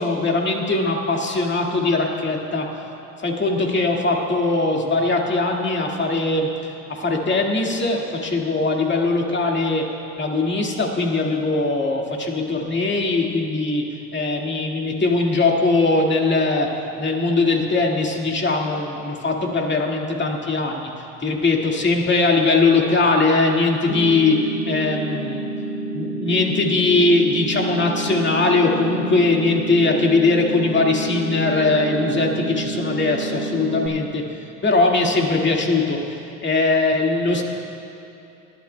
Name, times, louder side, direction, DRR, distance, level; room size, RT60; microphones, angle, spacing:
voice 1, 0.0-2.7 3.2-6.5 6.9-9.9 10.2-13.9 14.1-16.7 17.0-20.9 21.2-25.5 25.9-34.2 34.6-36.0 36.4-37.4, left 3 dB, 25° left, 0 dB, 2.0 m, -20 dB
sound 1, 23.9-33.9, right 2 dB, 15° right, 2.3 m, -29 dB
21.0 x 12.0 x 2.3 m, 2.9 s
supercardioid pair, 75°, 40 cm